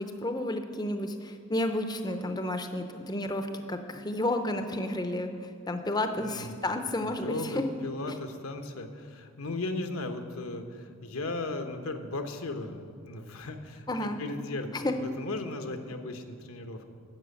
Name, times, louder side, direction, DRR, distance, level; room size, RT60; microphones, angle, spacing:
voice 1, 0.0-7.7 8.1-8.2 13.9-14.2 14.7-14.9, left 1 dB, 20° left, 7 dB, 0.6 m, -31 dB
voice 2, 6.2-6.6 7.2-14.7 15.0-16.9, left 2 dB, 75° left, 6 dB, 1.0 m, -36 dB
12.0 x 6.7 x 8.3 m, 2.3 s
head